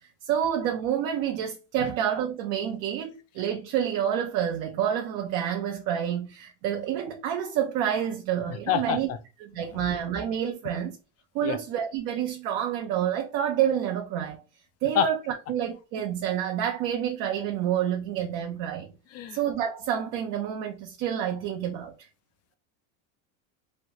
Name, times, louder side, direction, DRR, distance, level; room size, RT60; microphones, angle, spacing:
voice 1, 0.2-9.1 9.4-11.0 11.3-14.4 14.8-18.9 19.3-21.9, right 9 dB, 60° right, 0.7 m, -28 dB
voice 2, 8.5-9.2 9.7-9.8 11.4-11.6 14.9-15.1 19.1-19.4, left 9 dB, 40° left, 0.5 m, -28 dB
3.1 x 2.6 x 2.9 m
supercardioid pair, 115°, 40 cm